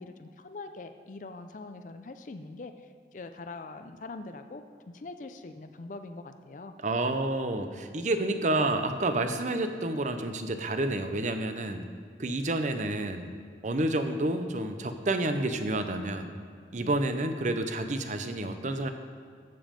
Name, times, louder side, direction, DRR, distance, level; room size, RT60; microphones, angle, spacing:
voice 1, 0.0-2.7 3.1-6.7 16.8-17.0, left 3 dB, 45° left, 8 dB, 0.4 m, -43 dB
voice 2, 6.8-11.9 12.2-13.3 13.6-16.3 16.7-18.9, right 2 dB, 45° right, 8 dB, 0.7 m, -29 dB
14.5 x 5.3 x 5.2 m, 2.2 s
head